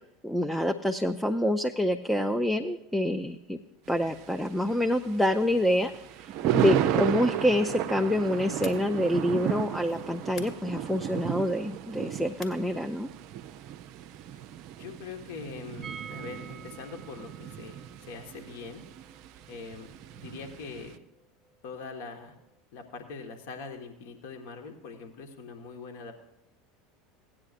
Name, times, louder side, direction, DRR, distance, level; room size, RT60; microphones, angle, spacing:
voice 1, 0.0-3.6 3.9-5.9 6.5-13.1, left 1 dB, 5° left, 6 dB, 0.5 m, -27 dB
Thunder, 3.9-21.0, right 11 dB, 50° right, 0.5 m, -34 dB
sound 1, 7.9-13.7, left 5 dB, 45° left, 1.9 m, -52 dB
voice 2, 14.8-18.8 19.5-19.9 20.1-21.0 21.6-22.3 22.7-26.2, left 4 dB, 60° left, 4 dB, 1.5 m, -42 dB
sound 2, 15.8-21.6 21.8-21.9 22.2-22.3, right 7 dB, 20° right, 0.9 m, -49 dB
17.5 x 9.7 x 2.5 m, 0.86 s
figure-of-eight pair, 75°, 0 cm